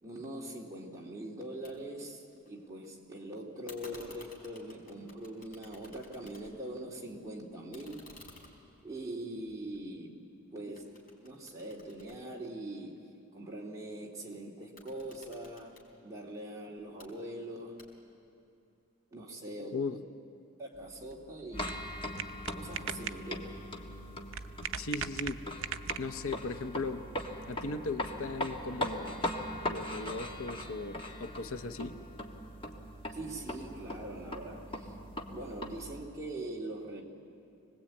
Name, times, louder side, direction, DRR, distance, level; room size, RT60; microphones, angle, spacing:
voice 1, 0.0-8.1 8.8-10.2 10.5-10.9 11.2-13.1 13.3-17.8 19.1-20.0 20.6-21.7 22.5-23.6 33.1-35.0 35.3-37.0, right 1 dB, 15° right, -3 dB, 2.6 m, -42 dB
sound 1, 1.6-1.7 2.0-2.9 3.7-6.7 7.1-10.3 10.8-13.0 14.6-15.9 16.8-17.1 17.8-18.2, left 2 dB, 40° left, 4.0 m, -55 dB
sound 2, 20.7-26.4, right 8 dB, 65° right, 0.7 m, -41 dB
sound 3, 21.5-35.8, left 1 dB, 25° left, 1.5 m, -40 dB
voice 2, 24.8-25.4 26.0-27.1 27.5-29.2 29.7-32.0, left 3 dB, 75° left, 8 dB, 0.9 m, -37 dB
26.0 x 19.5 x 8.5 m, 2.6 s
head